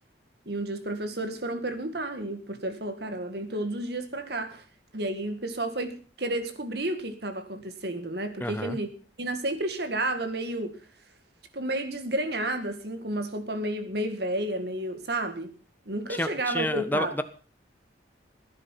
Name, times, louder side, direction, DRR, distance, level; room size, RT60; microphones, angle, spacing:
voice 1, 0.5-4.6 4.9-8.9 9.2-10.8 11.5-15.5 15.9-17.1, right 1 dB, 60° right, 1.9 m, -31 dB
voice 2, 8.4-8.8 16.1-17.2, left 1 dB, 10° left, 0.9 m, -30 dB
16.0 x 10.0 x 5.7 m
head